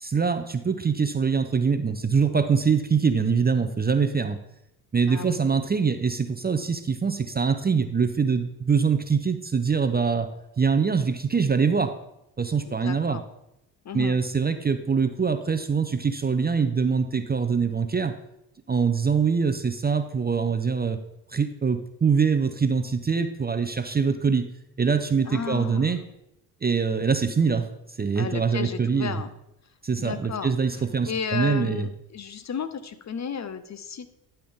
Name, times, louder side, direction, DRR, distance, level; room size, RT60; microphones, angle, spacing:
voice 1, 0.0-4.4 4.9-10.3 10.6-11.9 12.4-13.2 13.9-18.1 18.7-21.0 21.3-24.5 24.8-26.0 26.6-27.7 28.0-29.2 29.8-31.9, right 5 dB, 20° right, 9 dB, 0.6 m, -24 dB
voice 2, 5.0-5.4 12.7-13.2 13.8-14.2 25.2-26.1 28.1-29.3 30.0-34.1, left 7 dB, 35° left, 12 dB, 0.7 m, -34 dB
11.5 x 5.7 x 3.6 m, 0.84 s
hypercardioid pair, 55°, 50 cm